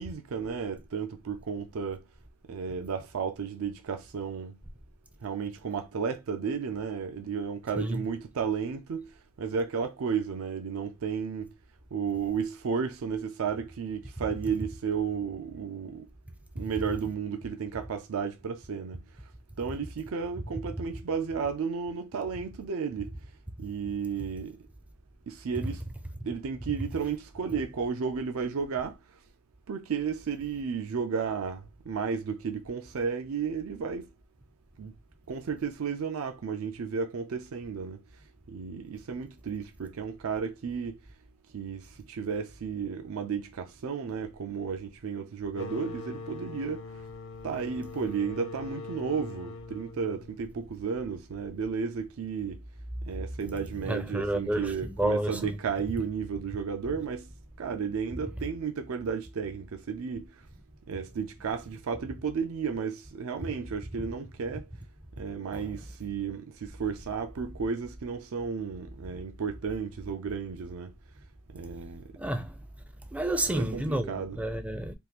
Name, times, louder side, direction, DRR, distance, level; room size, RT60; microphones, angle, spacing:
voice 1, 0.0-2.1 2.5-4.6 5.2-11.5 11.9-16.1 16.5-19.0 19.6-23.2 23.6-24.7 25.3-25.8 26.2-29.0 29.7-34.1 34.8-34.9 35.3-38.0 38.5-41.0 41.5-47.0 47.4-52.6 53.1-57.3 57.6-60.4 60.9-64.7 65.2-70.9 71.5-72.1 73.5-74.4, right 6 dB, 80° right, 0.4 m, -33 dB
sound 1, 45.5-51.0, left 3 dB, 65° left, 0.5 m, -43 dB
voice 2, 53.8-55.6 65.5-65.7 72.2-72.6 73.1-74.9, right 1 dB, 5° right, 0.4 m, -30 dB
3.6 x 2.4 x 2.8 m
head